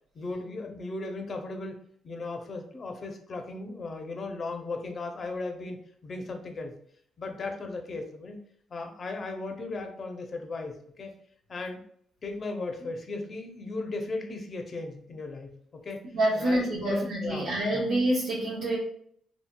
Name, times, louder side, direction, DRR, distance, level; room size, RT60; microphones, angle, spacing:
voice 1, 0.1-1.8 2.0-5.8 6.0-6.7 7.2-8.4 8.7-11.1 11.5-11.8 12.2-16.0 16.4-17.9, left 3 dB, 40° left, 4 dB, 0.5 m, -36 dB
voice 2, 16.1-18.8, right 1 dB, 85° right, -8 dB, 0.9 m, -27 dB
2.8 x 2.7 x 2.2 m, 0.65 s
cardioid pair, 90°, 0 cm